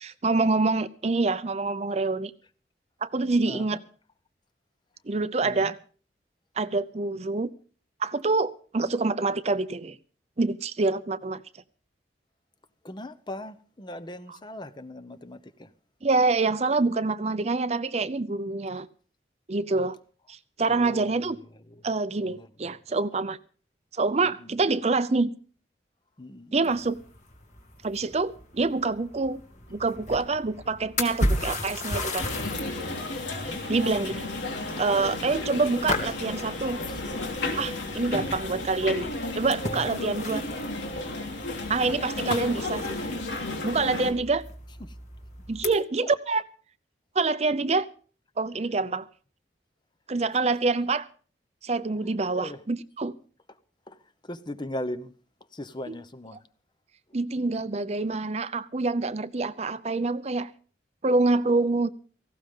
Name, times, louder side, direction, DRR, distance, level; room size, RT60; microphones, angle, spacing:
voice 1, 0.0-2.3 3.0-3.8 5.1-5.8 6.6-7.5 8.0-10.0 10.4-11.4 16.0-18.9 19.5-20.0 20.3-21.4 21.8-23.4 23.9-25.3 26.5-27.0 27.8-29.4 29.7-32.3 33.7-34.2 34.8-36.8 37.6-40.4 41.7-43.0 43.6-44.4 45.5-46.4 47.1-47.9 48.4-49.1 50.1-51.1 51.6-53.1 55.9-56.0 57.1-60.5 61.0-61.9, right 3 dB, 35° right, 0.6 m, -26 dB
voice 2, 3.5-3.8 5.4-5.7 12.8-15.7 20.7-21.8 22.2-22.8 24.2-24.6 26.2-26.7 33.2-33.6 36.9-37.0 44.8-45.0 46.0-46.1 52.4-52.6 53.9-54.0 54.2-55.1 55.5-56.5, left 1 dB, 25° left, 0.8 m, -39 dB
sound 1, 26.6-45.7, left 1 dB, 45° left, 2.4 m, -36 dB
sound 2, 32.2-44.1, left 2 dB, 90° left, 3.3 m, -33 dB
18.0 x 16.0 x 3.7 m
head